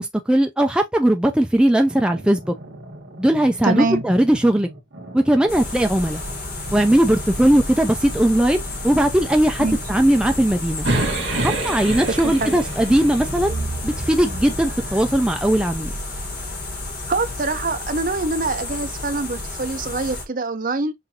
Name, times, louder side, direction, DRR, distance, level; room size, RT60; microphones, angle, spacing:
voice 1, 0.0-2.5 3.2-4.7 5.1-6.2 6.7-10.9 11.4-13.6 13.8-15.9, right 1 dB, 5° right, 0.4 m, -19 dB
sound 1, 1.8-15.2, right 1 dB, 70° right, 1.6 m, -40 dB
voice 2, 3.6-4.0 9.6-9.8 12.2-12.6 17.1-20.9, right 3 dB, 45° right, 0.7 m, -24 dB
sound 2, 5.5-20.3, left 2 dB, 50° left, 1.5 m, -31 dB
sound 3, 10.8-15.1, right 2 dB, 85° right, 1.5 m, -27 dB
5.9 x 2.6 x 2.8 m
head